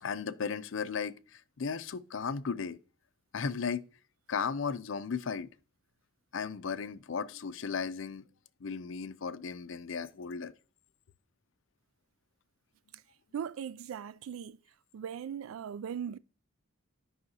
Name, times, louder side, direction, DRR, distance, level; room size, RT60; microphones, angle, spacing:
voice 1, 0.0-2.8 3.3-3.9 4.3-5.5 6.3-8.2 8.6-10.5, left 5 dB, 65° left, 0.5 m, -35 dB
voice 2, 13.3-14.6 14.9-16.2, right 8 dB, 75° right, 0.3 m, -39 dB
10.5 x 5.5 x 2.8 m
head